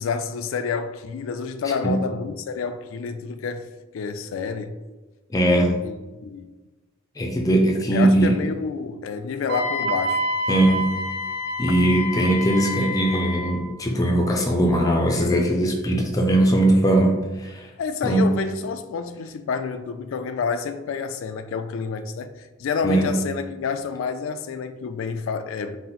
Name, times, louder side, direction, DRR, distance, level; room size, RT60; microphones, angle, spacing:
voice 1, 0.0-3.7 3.9-4.8 5.8-6.0 6.2-6.5 7.9-10.3 11.7-11.8 17.8-25.8, left 5 dB, 85° left, 0.3 m, -29 dB
voice 2, 5.3-5.8 7.2-8.4 10.5-11.0 11.6-17.7 18.0-18.4 22.8-23.2, right 1 dB, 20° left, 0.4 m, -20 dB
Wind instrument woodwind instrument, 9.5-13.6, left 1 dB, 55° right, 0.6 m, -28 dB
4.3 x 2.0 x 3.8 m
head